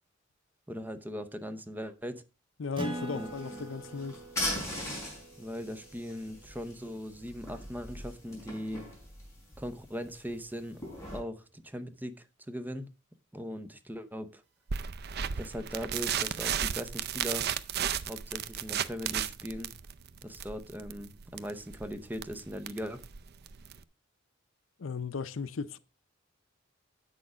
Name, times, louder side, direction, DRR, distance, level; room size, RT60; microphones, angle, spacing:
voice 1, 0.7-2.2 3.1-3.7 5.4-8.9 9.6-10.8 11.1-12.9 13.3-14.4 15.4-17.5 18.1-19.7 20.2-23.0, equal, 10° right, 0.8 m, -39 dB
voice 2, 2.6-4.2 24.8-25.8, left 5 dB, 75° left, 0.6 m, -36 dB
Acoustic guitar, 2.8-7.7, right 1 dB, 25° right, 1.7 m, -44 dB
sound 1, 2.9-11.2, left 1 dB, 15° left, 5.2 m, -41 dB
sound 2, 14.7-23.8, right 8 dB, 55° right, 0.5 m, -34 dB
8.4 x 6.4 x 4.9 m
head